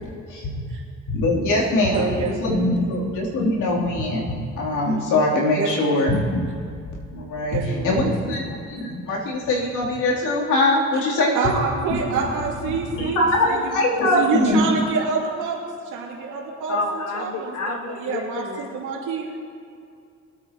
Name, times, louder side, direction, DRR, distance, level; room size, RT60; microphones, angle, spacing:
voice 1, 1.1-6.8 7.1-7.6 7.8-11.6 12.9-14.6, left 1 dB, 85° left, -4 dB, 3.2 m, -22 dB
voice 2, 1.9-2.3 5.6-6.0 7.5-8.4 11.3-13.7 14.1-19.3, right 4 dB, 85° right, -3 dB, 2.7 m, -27 dB
voice 3, 16.7-18.8, left 3 dB, 60° left, 3 dB, 1.8 m, -29 dB
22.0 x 8.9 x 2.9 m, 2.4 s
cardioid pair, 90°, 30 cm